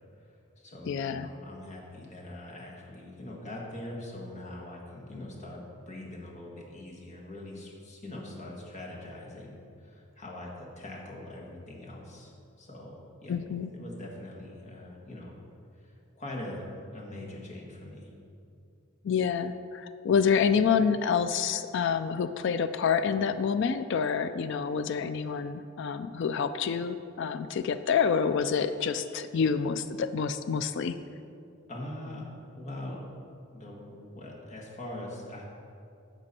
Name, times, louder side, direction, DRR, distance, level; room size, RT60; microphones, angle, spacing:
voice 1, 0.2-15.3 15.8-18.1 31.7-32.2 32.6-33.0 33.5-35.4, left 1 dB, 35° left, -2 dB, 1.5 m, -42 dB
voice 2, 0.8-1.3 13.3-13.7 19.0-30.9, left 6 dB, 60° left, 11 dB, 0.3 m, -27 dB
10.5 x 6.2 x 4.2 m, 2.5 s
head